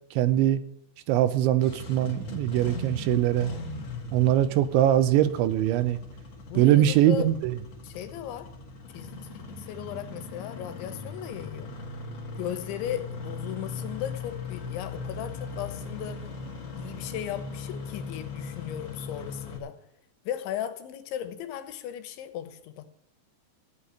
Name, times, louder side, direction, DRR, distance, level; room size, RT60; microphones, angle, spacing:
voice 1, 0.2-0.6 1.1-3.5 4.1-6.0 6.6-7.5, right 12 dB, 80° right, 12 dB, 3.2 m, -22 dB
Engine starting, 1.4-19.6, left 4 dB, 40° left, 2.9 m, -39 dB
voice 2, 6.5-7.3 7.8-8.5 8.9-11.7 12.4-16.3 16.8-19.8 20.3-22.8, left 11 dB, 80° left, 10 dB, 3.5 m, -36 dB
15.5 x 5.6 x 9.9 m, 0.76 s
omnidirectional pair, 5.3 m